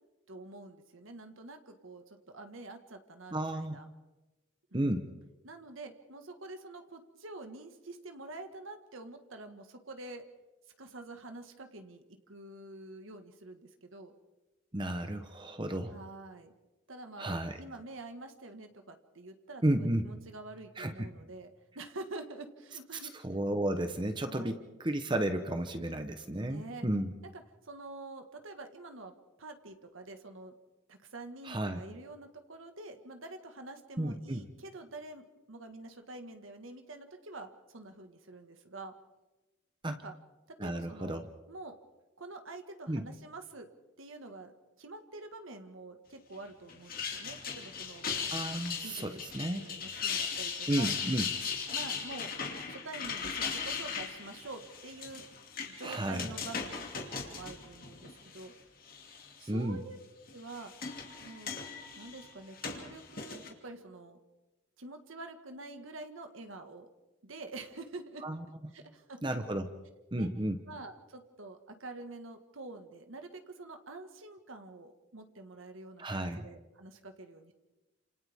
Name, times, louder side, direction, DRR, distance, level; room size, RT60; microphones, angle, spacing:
voice 1, 0.3-3.9 4.7-5.0 5.4-10.3 10.8-14.1 15.9-16.5 16.9-21.5 21.8-23.2 24.3-24.5 26.3-26.9 27.3-30.5 30.9-38.9 39.9-40.1 40.5-41.2 41.5-41.8 42.2-43.7 44.0-44.5 44.8-48.1 48.8-50.9 51.7-52.3 52.7-55.3 55.7-58.5 59.4-60.0 60.3-60.7 61.2-61.7 62.0-64.2 64.8-66.9 67.2-68.3 68.7-69.4 70.2-70.3 70.7-77.5, right 2 dB, 80° right, 6 dB, 1.7 m, -47 dB
voice 2, 3.3-3.8 4.7-5.1 14.7-15.9 17.2-17.6 19.6-20.1 20.8-21.1 23.2-27.1 31.4-31.8 34.0-34.5 39.8-40.0 40.6-41.2 42.9-43.1 48.3-49.6 50.7-51.3 55.8-56.3 59.5-59.8 68.2-68.4 69.2-69.7 70.1-70.6 76.0-76.5, right 1 dB, 25° right, 7 dB, 0.9 m, -33 dB
sound 1, 46.7-58.5 58.9-59.5 60.3-63.5, left 6 dB, 45° left, 2.6 m, -38 dB
30.0 x 27.5 x 3.6 m, 1.1 s
head